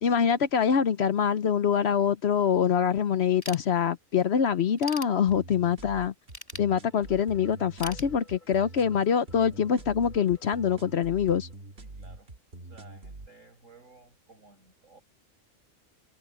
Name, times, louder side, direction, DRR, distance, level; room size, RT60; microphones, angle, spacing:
voice 1, 0.0-6.1 6.6-11.5, left 7 dB, 60° left, 0.9 m, -25 dB
Ratchet pawl / Tools, 3.4-4.2 4.6-5.7 6.3-7.3 7.8-8.8, left 1 dB, 15° left, 3.1 m, -42 dB
sound 1, 5.3-13.3, right 2 dB, 50° right, 2.4 m, -45 dB
sound 2, 6.9-11.9, left 2 dB, 35° left, 8.0 m, -58 dB
voice 2, 8.4-8.8 11.8-12.3 12.6-15.0, right 3 dB, 75° right, 7.6 m, -56 dB
omnidirectional pair, 1.4 m